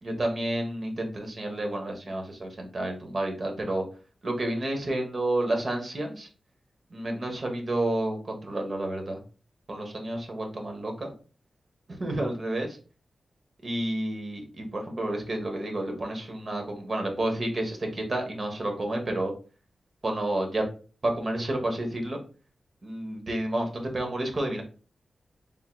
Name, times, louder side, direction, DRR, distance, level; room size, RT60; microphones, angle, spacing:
voice 1, 0.0-3.8 4.2-6.3 6.9-9.2 9.7-11.1 11.9-12.8 13.6-19.3 20.0-20.7 21.0-22.2 22.8-24.6, right 1 dB, 40° right, 2 dB, 1.1 m, -30 dB
4.3 x 3.7 x 2.2 m, 0.37 s
wide cardioid pair, 120°, 0 cm